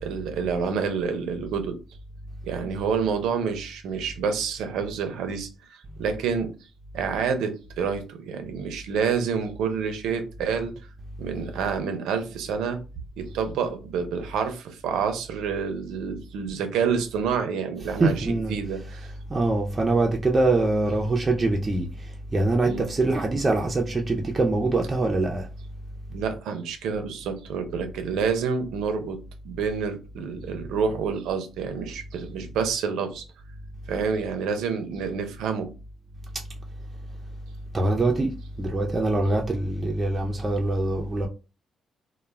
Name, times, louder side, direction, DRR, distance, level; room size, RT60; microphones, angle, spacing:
voice 1, 0.0-1.8 2.4-6.5 6.9-10.7 11.2-12.8 13.2-19.1 22.7-22.9 26.1-29.2 29.4-33.2 33.9-35.7, right 6 dB, 85° right, 0.5 m, -28 dB
voice 2, 18.0-18.5 19.3-25.5 37.7-41.3, right 2 dB, 25° right, 0.4 m, -24 dB
2.2 x 2.1 x 3.1 m
cardioid pair, 90°, 0 cm